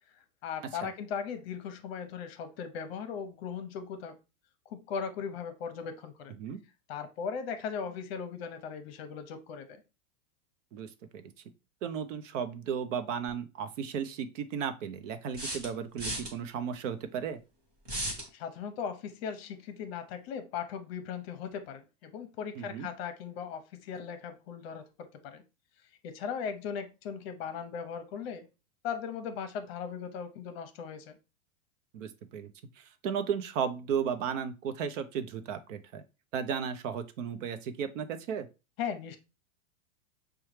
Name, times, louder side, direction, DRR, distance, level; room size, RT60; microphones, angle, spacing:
voice 1, 0.4-4.2 4.7-6.4 6.9-9.8 18.3-25.4 26.0-28.5 28.8-31.2 38.8-39.2, left 7 dB, 45° left, 9 dB, 0.7 m, -38 dB
voice 2, 10.7-11.2 11.8-17.4 22.6-22.9 31.9-32.5 32.8-36.0 36.3-38.5, right 7 dB, 60° right, 10 dB, 0.7 m, -34 dB
sound 1, 15.3-16.3 17.8-18.3, right 1 dB, 20° right, 1.1 m, -35 dB
5.6 x 2.3 x 3.1 m, 0.28 s
supercardioid pair, 150°, 42 cm